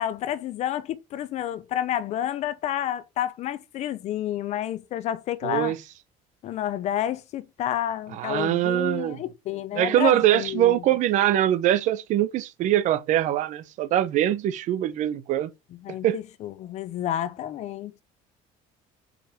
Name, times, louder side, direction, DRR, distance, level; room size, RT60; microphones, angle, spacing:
voice 1, 0.0-5.7 6.4-10.7 15.8-17.9, left 11 dB, 45° left, 0.6 m, -30 dB
voice 2, 5.4-5.8 8.1-9.2 9.8-15.5 16.0-16.2, right 12 dB, 55° right, 0.8 m, -23 dB
6.0 x 5.1 x 4.9 m
cardioid pair, 160°, 15 cm